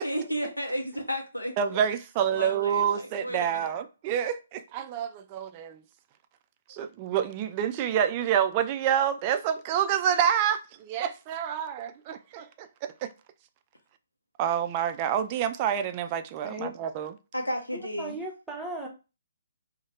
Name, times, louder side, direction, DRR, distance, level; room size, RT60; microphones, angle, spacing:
voice 1, 0.0-1.5 2.3-3.7 17.3-18.2, equal, 85° left, 0.5 m, -33 dB
voice 2, 1.6-5.8 6.7-13.1 14.4-17.1, right 9 dB, 30° right, 0.3 m, -28 dB
voice 3, 18.0-18.9, right 1 dB, 5° right, 0.7 m, -36 dB
2.7 x 2.1 x 3.0 m
figure-of-eight pair, 130°, 0 cm